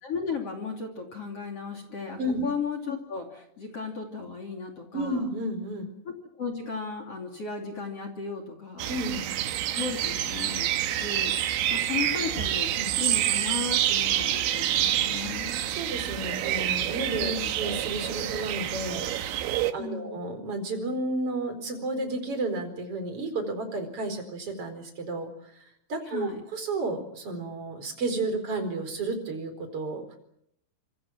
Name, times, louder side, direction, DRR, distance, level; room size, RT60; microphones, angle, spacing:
voice 1, 0.0-5.2 6.0-9.0 9.7-11.4 11.7-12.7 13.0-15.6 17.2-17.5 19.8-20.2 26.1-26.4, left 5 dB, 35° left, 6 dB, 3.1 m, -35 dB
voice 2, 4.9-5.9 8.9-9.3 11.6-11.7 12.8-12.9 15.6-30.2, right 2 dB, 30° right, 7 dB, 4.9 m, -32 dB
sound 1, 8.8-19.7, right 12 dB, 85° right, 3.9 m, -28 dB
26.5 x 26.0 x 7.4 m, 0.74 s
omnidirectional pair, 5.3 m